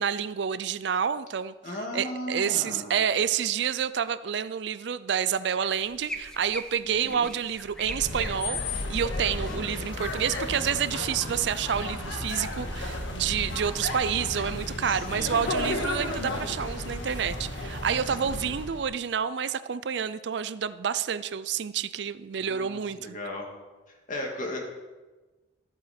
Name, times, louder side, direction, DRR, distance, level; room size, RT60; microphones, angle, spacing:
voice 1, 0.0-23.2, right 8 dB, 65° right, 15 dB, 0.4 m, -29 dB
voice 2, 1.6-2.9 6.8-7.2 9.3-9.6 14.8-15.5 18.2-18.4 22.4-23.5 24.1-24.6, left 1 dB, 45° left, 1 dB, 2.2 m, -37 dB
sound 1, 5.5-17.5, equal, 5° left, 0.8 m, -44 dB
sound 2, 7.8-18.9, left 1 dB, 85° left, 1.7 m, -33 dB
14.0 x 8.8 x 4.4 m, 1.2 s
head